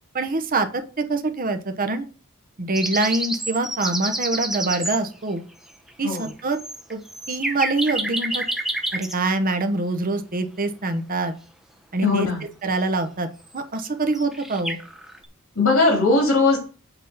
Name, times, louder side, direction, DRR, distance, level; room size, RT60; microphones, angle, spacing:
voice 1, 0.1-2.1 2.6-5.4 6.0-6.6 6.9-7.0 7.3-8.4 8.9-11.3 11.9-12.3 12.6-13.3 13.5-14.8, right 2 dB, 40° right, 8 dB, 1.0 m, -24 dB
sound 1, 2.7-5.0 5.9-6.0 6.1-9.2 13.5-13.6 13.9-14.0 14.1-15.2, right 1 dB, ahead, 0.7 m, -28 dB
voice 2, 12.0-12.4 15.6-16.6, left 3 dB, 80° left, 0 dB, 2.9 m, -19 dB
8.2 x 3.7 x 5.6 m, 0.38 s
head